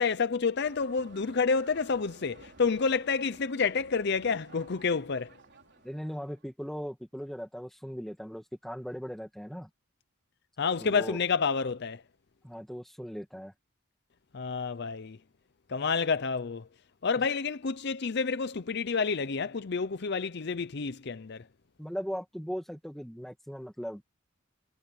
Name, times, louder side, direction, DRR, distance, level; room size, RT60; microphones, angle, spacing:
voice 1, 0.0-5.3 10.6-12.0 14.3-15.2 15.7-16.7 17.0-21.4, left 5 dB, 50° left, 0.6 m, -29 dB
sound 1, 0.6-6.5, right 3 dB, 55° right, 4.7 m, -55 dB
voice 2, 5.8-9.7 10.8-11.2 12.4-13.5 21.8-24.0, equal, ahead, 2.2 m, -38 dB
head